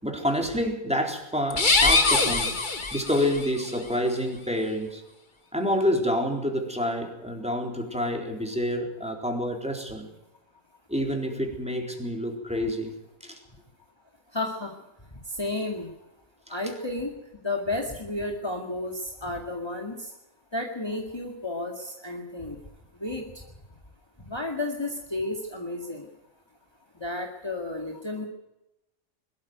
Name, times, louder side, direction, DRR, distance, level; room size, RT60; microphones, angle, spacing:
voice 1, 0.0-5.0 5.5-10.1 10.9-12.9 13.2-13.4, equal, 5° right, 2 dB, 3.8 m, -28 dB
sound 1, 1.5-3.5, left 3 dB, 35° left, 1.9 m, -22 dB
voice 2, 14.3-14.7 15.3-15.9 16.5-17.1 17.4-20.1 20.5-22.6 23.0-23.2 24.3-26.0 27.0-28.3, left 2 dB, 20° left, 1 dB, 2.2 m, -32 dB
22.0 x 13.0 x 9.4 m, 0.92 s
omnidirectional pair, 1.4 m